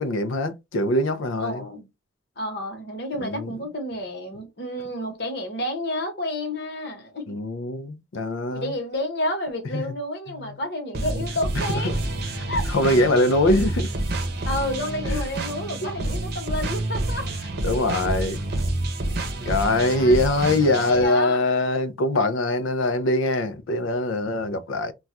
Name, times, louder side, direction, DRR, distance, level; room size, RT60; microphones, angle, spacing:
voice 1, 0.0-1.6 3.2-3.5 7.3-8.7 9.7-9.8 10.3-10.6 11.8-12.0 12.4-13.9 15.0-15.3 17.6-18.4 19.5-24.9, left 1 dB, 85° left, 0.5 m, -23 dB
voice 2, 1.4-1.9 2.4-7.3 8.5-11.9 12.5-12.6 14.4-17.3 19.0-21.4, left 1 dB, 55° left, 1.0 m, -30 dB
sound 1, 10.9-21.0, right 2 dB, 55° right, 0.7 m, -28 dB
2.3 x 2.3 x 4.0 m
head